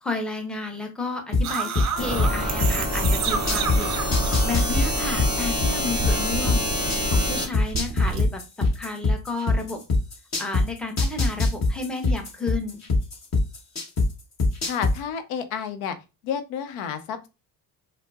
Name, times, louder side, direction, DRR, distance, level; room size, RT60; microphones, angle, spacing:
voice 1, 0.0-6.7 7.1-9.8 10.4-12.8, left 3 dB, ahead, 4 dB, 0.7 m, -32 dB
sound 1, 1.3-3.8 4.1-7.2 7.5-10.6 11.0-14.1 14.4-14.9, left 3 dB, 35° left, 1.1 m, -21 dB
sound 2, 1.4-5.5 5.8-8.2, right 6 dB, 40° right, 0.6 m, -31 dB
sound 3, 2.0-7.5, left 1 dB, 15° left, 1.7 m, -27 dB
voice 2, 14.6-16.0 16.2-17.3, left 7 dB, 80° left, 10 dB, 0.6 m, -30 dB
4.3 x 2.0 x 2.3 m, 0.27 s
supercardioid pair, 75°, 46 cm